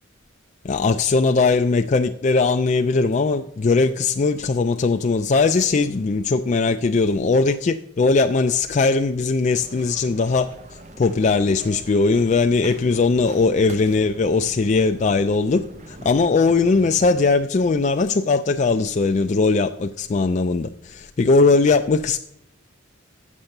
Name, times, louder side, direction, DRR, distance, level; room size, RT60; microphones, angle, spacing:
voice 1, 0.6-10.5 11.0-22.2, left 3 dB, 35° left, 0.3 m, -19 dB
sound 1, 9.5-17.1, right 1 dB, 35° right, 0.8 m, -42 dB
9.1 x 7.3 x 6.5 m
head